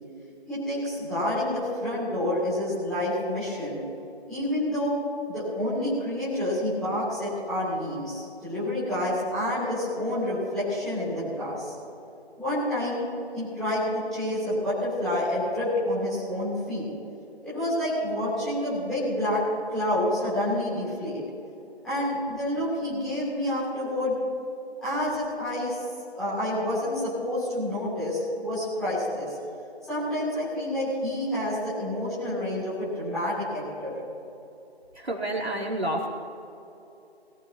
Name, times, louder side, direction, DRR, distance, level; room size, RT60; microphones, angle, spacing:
voice 1, 0.5-3.8 4.3-4.9 5.3-11.7 12.4-13.0 13.3-16.8 17.4-19.4 19.7-21.2 21.8-24.1 24.8-25.8 26.1-29.3 29.9-33.9, left 1 dB, ahead, -15 dB, 3.2 m, -28 dB
voice 2, 34.9-36.1, right 1 dB, 75° right, -1 dB, 3.1 m, -29 dB
22.0 x 14.5 x 3.0 m, 2.9 s
figure-of-eight pair, 160°, 32 cm